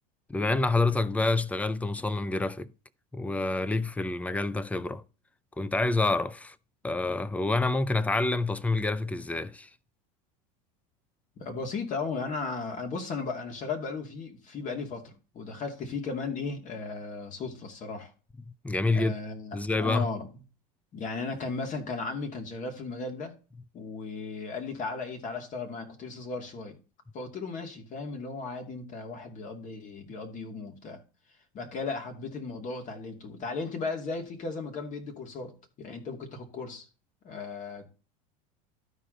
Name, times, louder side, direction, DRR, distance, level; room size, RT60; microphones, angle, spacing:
voice 1, 0.3-2.7 3.1-5.0 5.6-6.6 6.8-9.7 18.6-19.1 19.5-20.1, left 3 dB, 5° left, 0.6 m, -27 dB
voice 2, 11.4-18.1 18.9-20.4 20.9-23.4 23.7-26.8 27.1-31.0 31.5-36.9 37.2-37.9, left 4 dB, 40° left, 2.6 m, -36 dB
12.5 x 5.0 x 4.0 m
supercardioid pair, 110°, 19 cm